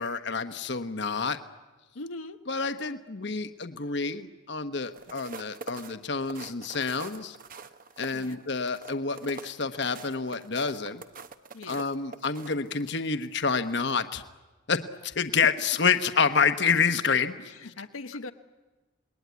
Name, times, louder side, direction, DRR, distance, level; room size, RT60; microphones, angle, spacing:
voice 1, 0.0-1.4 2.5-7.4 8.0-11.0 11.7-14.2 14.7-17.5, left 5 dB, 55° left, 9 dB, 1.0 m, -28 dB
voice 2, 1.9-2.4 8.1-8.4 11.5-11.8 17.4-18.3, left 2 dB, 85° left, 7 dB, 0.9 m, -40 dB
sound 1, 4.9-13.1 13.5-13.7, right 4 dB, 40° right, 0.9 m, -44 dB
27.5 x 20.5 x 9.4 m, 1.3 s
head